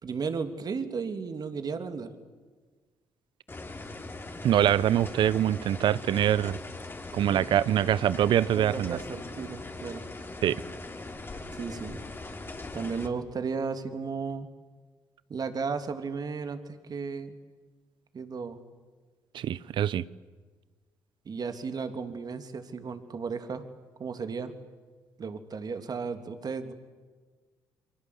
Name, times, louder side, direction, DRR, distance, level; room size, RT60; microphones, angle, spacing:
voice 1, 0.0-2.1 7.3-7.5 8.4-10.0 11.5-12.0 12.7-14.5 15.3-17.3 18.1-18.6 21.2-23.6 24.0-24.5 25.2-26.7, right 5 dB, 50° right, 8 dB, 3.2 m, -34 dB
sound 1, 3.5-13.1, left 2 dB, 25° left, 4.3 m, -40 dB
voice 2, 4.4-6.6 7.1-9.0 10.4-10.6 19.3-20.0, right 11 dB, 70° right, 19 dB, 0.9 m, -24 dB
28.5 x 24.0 x 8.5 m, 1.4 s
supercardioid pair, 60°, 9 cm